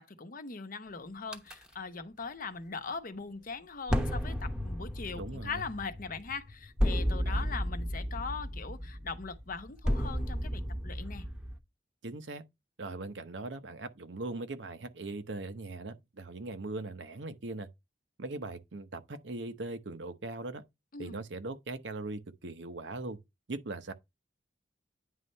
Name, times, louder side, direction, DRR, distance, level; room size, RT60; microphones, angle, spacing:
voice 1, 0.0-11.3 20.9-21.2, left 4 dB, 50° left, 0.9 m, -40 dB
sound 1, 1.3-1.5 3.9-11.6, equal, 5° right, 0.9 m, -33 dB
voice 2, 5.2-5.6 7.2-7.4 12.0-12.4 12.8-17.7 18.2-20.6 21.0-23.2 23.5-23.9, right 2 dB, 80° right, 0.9 m, -40 dB
9.5 x 3.2 x 5.4 m
head